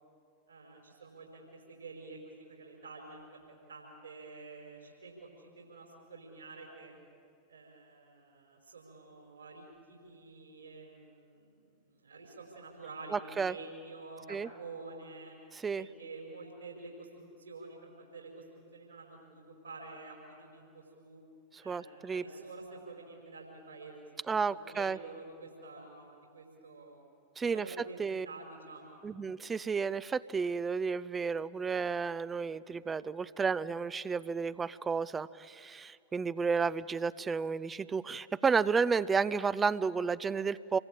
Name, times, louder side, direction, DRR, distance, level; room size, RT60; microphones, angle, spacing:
voice 1, 0.5-3.4 3.7-7.0 7.5-15.3 15.7-21.2 21.6-27.0 27.5-29.0, right 3 dB, 75° right, 0 dB, 5.1 m, -49 dB
voice 2, 13.1-13.5 14.3-14.5 15.5-15.9 21.5-22.2 24.3-25.0 27.4-27.7 28.0-28.3 29.0-40.8, right 5 dB, 15° right, 16 dB, 0.6 m, -32 dB
27.5 x 23.0 x 8.9 m, 2.3 s
figure-of-eight pair, 90°, 0 cm